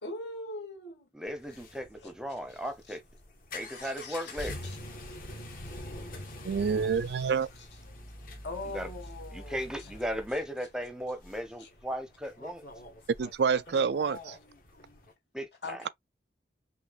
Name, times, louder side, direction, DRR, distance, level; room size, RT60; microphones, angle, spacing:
voice 1, 0.0-1.1 1.5-1.6 2.0-3.0 3.8-4.8 5.6-6.3 6.7-8.1 8.4-9.9 11.6-11.7 14.0-14.1 15.6-15.9, left 2 dB, 80° left, 2.3 m, -44 dB
voice 2, 1.1-3.0 3.5-4.6 8.7-8.9 9.3-12.6 15.3-15.8, equal, 5° right, 0.6 m, -36 dB
sound 1, 1.3-15.1, left 1 dB, 50° left, 1.5 m, -45 dB
voice 3, 6.4-7.5 13.2-14.4, right 6 dB, 70° right, 0.4 m, -27 dB
5.8 x 2.8 x 2.4 m
head